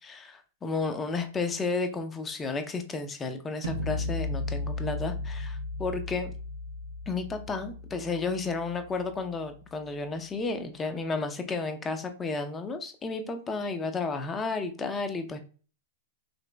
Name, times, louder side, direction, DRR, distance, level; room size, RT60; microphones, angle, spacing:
voice 1, 0.0-6.3 7.1-15.4, left 3 dB, 20° left, 7 dB, 0.6 m, -32 dB
sound 1, 3.6-9.6, left 2 dB, 90° right, 0.4 m, -35 dB
3.9 x 2.9 x 2.2 m, 0.39 s
hypercardioid pair, 120°, 0 cm